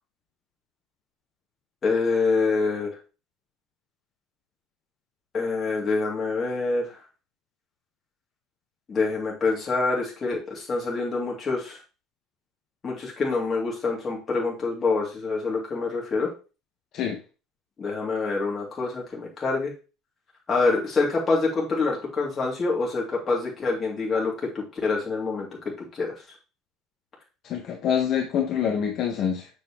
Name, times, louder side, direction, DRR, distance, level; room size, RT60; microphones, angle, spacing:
voice 1, 1.8-2.9 5.3-6.9 8.9-11.8 12.8-16.3 17.8-19.7 20.5-25.5 25.8-26.2, left 3 dB, 25° left, -2 dB, 2.5 m, -26 dB
voice 2, 27.4-29.5, left 8 dB, 40° left, 3 dB, 1.0 m, -26 dB
7.2 x 6.2 x 3.0 m, 0.33 s
cardioid pair, 165°, 0 cm